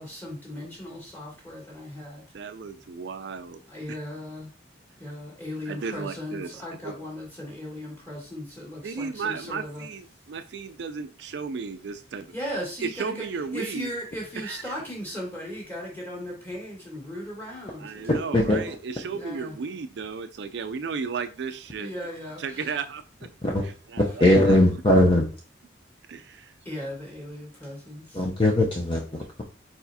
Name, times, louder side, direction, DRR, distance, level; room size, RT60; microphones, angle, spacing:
voice 1, 0.0-2.2 3.7-4.5 5.0-9.8 12.3-13.3 13.5-18.2 19.1-19.5 21.8-22.6 26.7-28.3, equal, 10° left, 1.8 m, -37 dB
voice 2, 2.3-3.6 3.9-4.0 5.7-6.9 8.8-12.3 12.8-13.9 14.4-14.8 17.8-21.9 22.4-23.0 23.6-24.8 26.1-26.5, right 5 dB, 65° right, 0.4 m, -34 dB
voice 3, 18.1-18.7 23.4-23.6 24.0-25.3 28.1-29.4, left 1 dB, 25° left, 0.6 m, -20 dB
4.7 x 4.2 x 2.7 m
head